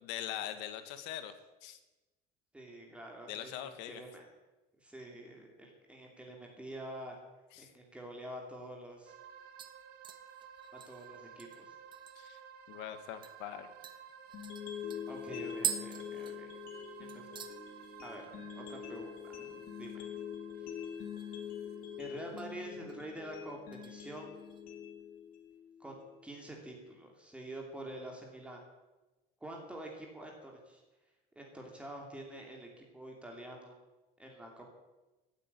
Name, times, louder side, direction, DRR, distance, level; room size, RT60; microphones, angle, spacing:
voice 1, 0.0-1.3 1.6-1.8 3.3-4.0 7.5-7.7 12.2-12.4 12.7-13.7, left 11 dB, 80° left, 10 dB, 1.9 m, -42 dB
voice 2, 2.5-4.3 4.8-7.1 7.6-9.1 10.7-11.7 15.1-16.5 17.1-17.4 18.0-20.1 20.6-20.7 22.0-24.3 25.8-28.6 29.4-30.8 31.3-33.7 34.2-34.7, right 1 dB, 5° right, 0 dB, 2.9 m, -47 dB
sound 1, 8.6-8.7 9.0-9.3 9.6-12.4 12.8-12.9 13.2-13.4 13.8-16.8 17.1-17.6 17.9-18.3 18.6-18.7 20.8-21.4 21.8-22.5 22.9-23.2 23.7-24.6 25.0-25.1, right 7 dB, 25° right, 1.2 m, -43 dB
sound 2, 9.1-22.6, right 8 dB, 55° right, 1.6 m, -54 dB
sound 3, 14.3-26.4, left 8 dB, 55° left, 2.8 m, -45 dB
15.0 x 9.1 x 9.8 m, 1.1 s
cardioid pair, 165°, 18 cm